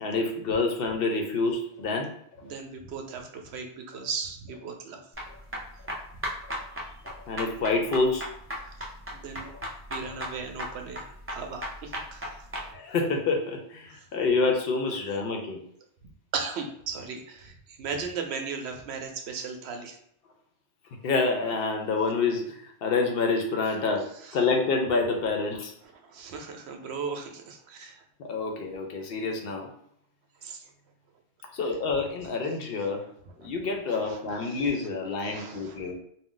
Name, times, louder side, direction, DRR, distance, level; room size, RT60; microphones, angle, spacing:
voice 1, 0.0-2.1 7.3-8.3 12.7-15.6 21.0-24.0 24.3-25.7 28.2-29.7 31.5-33.0 33.4-36.0, left 3 dB, 65° left, 2 dB, 0.7 m, -27 dB
voice 2, 2.4-5.0 6.4-6.5 6.8-6.9 8.5-8.8 9.1-9.5 9.9-12.4 13.9-14.1 16.3-20.0 24.0-24.4 25.8-28.0 30.4-30.7 31.6-31.7 33.3-33.4 33.9-34.7 35.2-35.9, right 5 dB, 75° right, 3 dB, 0.8 m, -37 dB
sound 1, 5.1-12.7, equal, 20° right, 0.4 m, -36 dB
2.4 x 2.1 x 3.7 m, 0.71 s
omnidirectional pair, 1.1 m